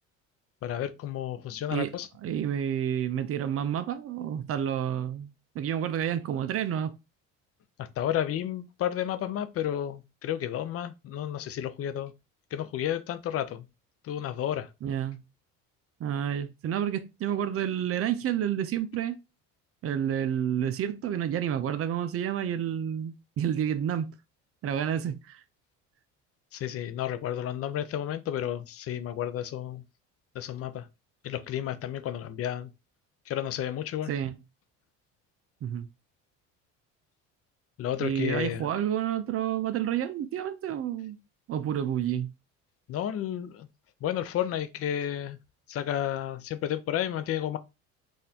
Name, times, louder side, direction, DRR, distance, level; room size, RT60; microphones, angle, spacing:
voice 1, 0.6-2.1 7.8-12.1 12.5-13.7 14.0-14.7 26.5-29.8 30.3-30.9 31.2-32.7 33.3-34.1 37.8-38.7 42.9-43.7 44.0-45.4 45.7-47.6, left 11 dB, 45° left, 0.5 m, -32 dB
voice 2, 2.2-5.3 5.5-6.9 14.8-15.2 16.0-19.2 19.8-24.1 24.6-25.4 34.1-34.4 35.6-35.9 38.0-41.1 41.5-42.3, right 9 dB, 45° right, 0.5 m, -29 dB
4.0 x 2.5 x 2.7 m
supercardioid pair, 100°, 33 cm